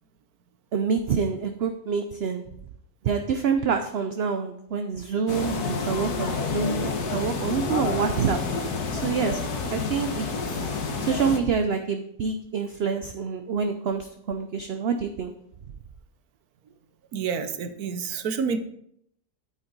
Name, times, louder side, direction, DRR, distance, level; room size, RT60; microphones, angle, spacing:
voice 1, 0.7-2.4 3.0-9.4 9.7-10.6 11.0-15.3, right 6 dB, 55° right, 6 dB, 0.7 m, -27 dB
sound 1, 5.3-11.4, left 4 dB, 90° left, 1.7 m, -29 dB
voice 2, 17.1-18.6, right 6 dB, 75° right, 10 dB, 1.3 m, -28 dB
8.8 x 8.7 x 4.0 m, 0.71 s
omnidirectional pair, 1.6 m